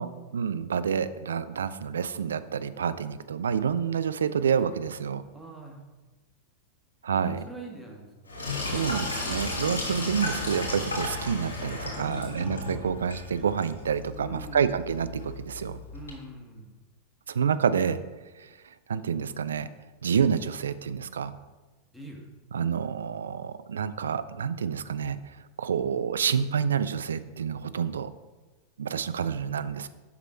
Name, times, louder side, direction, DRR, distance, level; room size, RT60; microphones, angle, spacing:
voice 1, 0.3-5.2 7.0-7.4 8.6-15.8 17.3-18.0 18.4-18.5 18.9-19.7 20.0-21.3 22.5-25.2 25.6-28.1 28.8-29.9, right 7 dB, 65° right, 13 dB, 0.4 m, -28 dB
voice 2, 5.3-5.8 7.1-8.4 11.9-12.8 14.2-14.8 15.9-16.7 21.9-22.2, right 2 dB, ahead, -2 dB, 1.8 m, -43 dB
Sink (filling or washing), 8.3-16.1, left 2 dB, 75° left, 2.3 m, -34 dB
7.5 x 6.0 x 4.4 m, 1.2 s
figure-of-eight pair, 90°, 0 cm